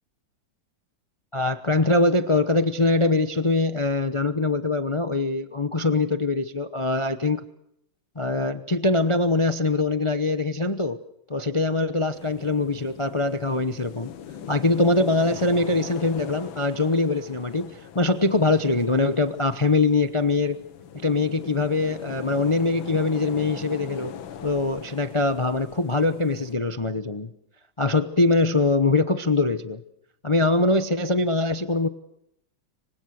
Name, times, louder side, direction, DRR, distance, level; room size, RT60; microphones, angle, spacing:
voice 1, 1.3-7.4 8.2-11.0 11.3-14.1 14.5-20.6 21.0-24.1 24.4-27.3 27.8-29.8 30.2-31.9, left 2 dB, 35° left, 10 dB, 0.5 m, -23 dB
sound 1, 12.1-26.5, left 8 dB, 80° left, 1.9 m, -41 dB
26.5 x 25.0 x 6.5 m, 0.78 s
omnidirectional pair, 2.1 m